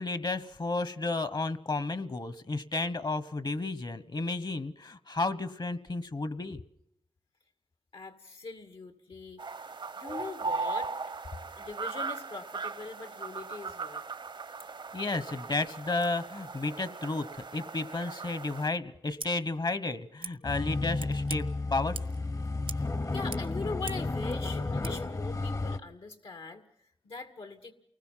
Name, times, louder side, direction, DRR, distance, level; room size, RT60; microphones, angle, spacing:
voice 1, 0.0-6.6 14.9-22.0, left 3 dB, 55° left, 14 dB, 1.2 m, -32 dB
voice 2, 7.9-9.7 10.0-10.9 11.6-14.0 22.7-27.7, left 4 dB, 90° left, 7 dB, 2.2 m, -42 dB
sound 1, 9.4-18.7, right 4 dB, 65° right, 0.9 m, -38 dB
Scissors, 19.1-19.3 20.2-20.3 21.0-21.4 21.9-22.2 22.6-22.9 23.1-24.1 24.8-24.9, right 4 dB, 90° right, 1.3 m, -42 dB
sound 2, 20.4-25.8, left 3 dB, 40° left, 0.8 m, -32 dB
29.0 x 20.5 x 5.8 m, 0.72 s
wide cardioid pair, 65°, 9 cm